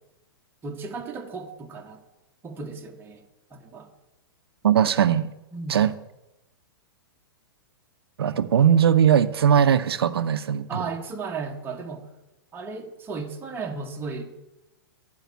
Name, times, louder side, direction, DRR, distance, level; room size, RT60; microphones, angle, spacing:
voice 1, 0.6-2.0 2.4-3.2 3.5-3.9 5.5-5.9 10.7-12.1 12.5-14.2, right 4 dB, 15° right, 2 dB, 1.3 m, -35 dB
voice 2, 4.6-5.3 5.7-5.9 8.2-10.7, right 8 dB, 85° right, 13 dB, 0.5 m, -19 dB
10.5 x 5.3 x 8.1 m, 0.96 s
hypercardioid pair, 130°, 13 cm